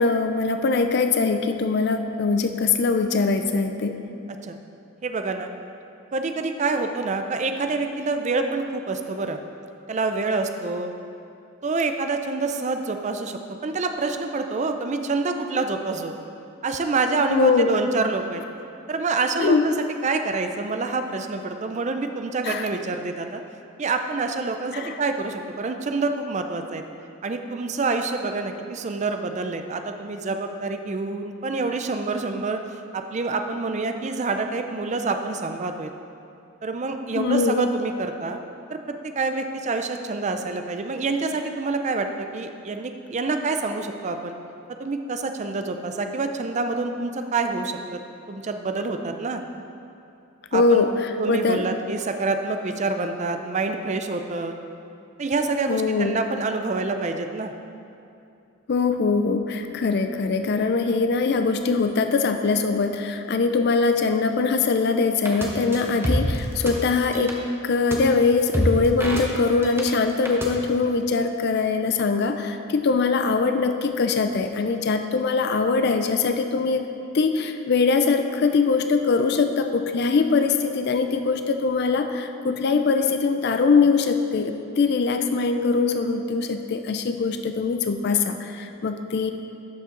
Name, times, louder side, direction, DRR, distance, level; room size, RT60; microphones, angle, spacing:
voice 1, 0.0-4.0 17.3-17.8 19.4-19.6 22.4-22.7 24.7-25.0 37.2-37.7 50.5-51.7 55.7-56.2 58.7-67.4 67.6-76.9 77.1-89.3, left 4 dB, 50° left, 7 dB, 0.4 m, -22 dB
voice 2, 5.0-5.5 6.1-9.4 9.9-10.9 11.6-16.1 16.6-18.4 18.9-19.7 20.0-23.4 23.8-26.8 27.2-32.6 32.9-35.9 36.6-38.4 38.7-44.4 44.8-48.0 48.3-49.4 50.5-50.8 51.2-54.6 55.2-57.5 65.9-66.2, right 3 dB, 35° right, 6 dB, 0.4 m, -27 dB
sound 1, 65.2-65.5 65.7-66.7 67.0-67.3 67.9-68.0 68.2-69.8 70.1-70.5, equal, 10° right, 0.8 m, -25 dB
12.0 x 5.5 x 3.8 m, 2.7 s
head